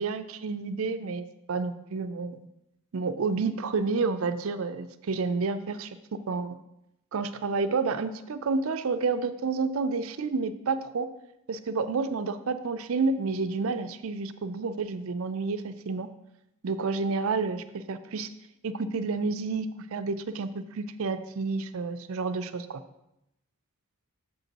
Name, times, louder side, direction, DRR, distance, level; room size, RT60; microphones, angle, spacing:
voice 1, 0.0-2.5 2.9-5.9 6.3-6.5 7.1-11.1 11.5-16.1 16.6-18.3 18.6-22.8, right 4 dB, 65° right, 11 dB, 0.5 m, -30 dB
8.0 x 6.8 x 2.9 m, 0.85 s
head